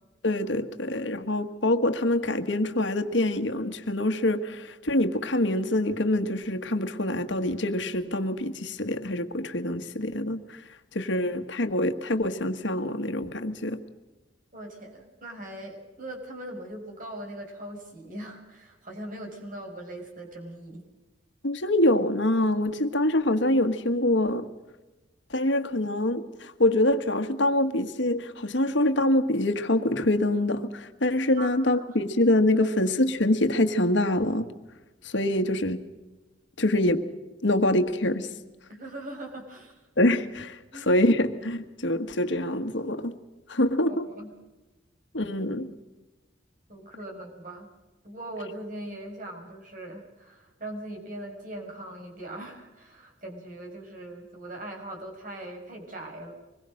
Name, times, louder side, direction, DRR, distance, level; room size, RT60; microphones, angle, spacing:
voice 1, 0.2-10.6 10.9-13.8 21.4-24.5 25.3-34.4 35.0-35.8 36.6-37.0 37.4-38.3 40.0-43.2 43.5-44.1 45.1-45.7, left 1 dB, 75° left, 8 dB, 1.6 m, -25 dB
voice 2, 14.5-20.9 31.4-31.8 32.6-32.7 38.7-39.8 40.7-40.8 43.9-44.3 46.7-47.7 48.0-56.3, right 1 dB, 45° right, 1 dB, 5.9 m, -40 dB
25.0 x 21.5 x 6.5 m, 1.1 s
head